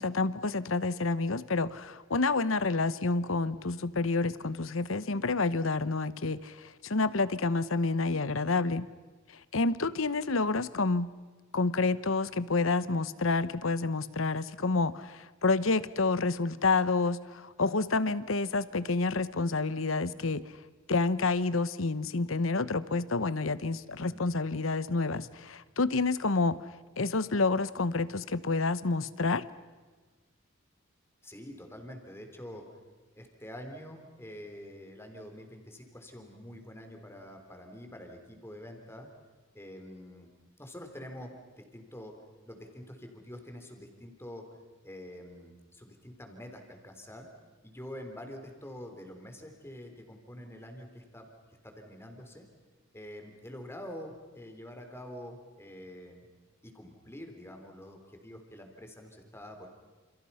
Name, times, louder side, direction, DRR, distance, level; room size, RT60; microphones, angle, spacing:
voice 1, 0.0-8.9 9.5-11.1 11.5-20.4 20.9-26.6 27.0-29.4, left 3 dB, 70° left, 15 dB, 1.0 m, -29 dB
voice 2, 24.0-24.4 31.2-32.6 33.1-39.1 39.5-40.3 40.6-41.3 41.6-42.1 42.5-44.4 44.8-47.3 47.6-51.3 51.6-52.5 52.9-56.3 56.6-59.7, left 1 dB, 10° left, 4 dB, 3.9 m, -46 dB
29.5 x 29.0 x 5.8 m, 1.3 s
head